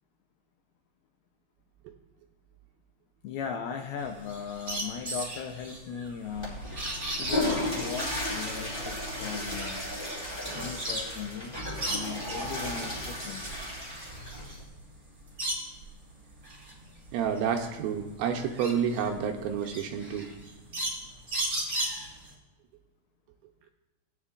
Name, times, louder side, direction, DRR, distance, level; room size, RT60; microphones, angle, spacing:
voice 1, 3.2-6.6 7.1-9.8 10.5-11.6 11.8-13.4, left 7 dB, 80° left, 4 dB, 2.4 m, -38 dB
sound 1, 4.0-11.2 11.5-12.5 13.0-15.9 16.3-22.3, right 1 dB, 20° right, 3.6 m, -36 dB
Water / Toilet flush, 6.3-14.6, left 1 dB, 15° left, 2.6 m, -34 dB
voice 2, 17.1-20.3, right 7 dB, 80° right, 4 dB, 2.4 m, -29 dB
17.0 x 9.6 x 2.4 m, 1.1 s
omnidirectional pair, 4.7 m